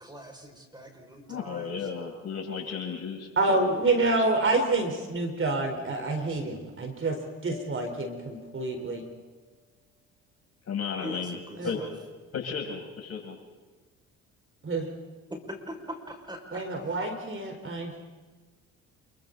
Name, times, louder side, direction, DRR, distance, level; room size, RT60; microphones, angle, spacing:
voice 1, 0.0-1.8 5.8-6.2 11.0-11.9 15.3-16.6, equal, 10° right, 2 dB, 5.8 m, -42 dB
voice 2, 1.3-3.7 10.7-11.3 11.6-11.8 12.3-13.4, left 6 dB, 45° left, -1 dB, 7.4 m, -34 dB
voice 3, 3.4-7.1 7.4-9.0 11.6-11.7 14.6-14.9 16.5-18.0, right 2 dB, 35° right, 3 dB, 4.3 m, -27 dB
Mallet percussion, 7.4-9.5, left 4 dB, 80° right, 7.9 m, -49 dB
28.5 x 24.0 x 4.1 m, 1.3 s
hypercardioid pair, 60°, 35 cm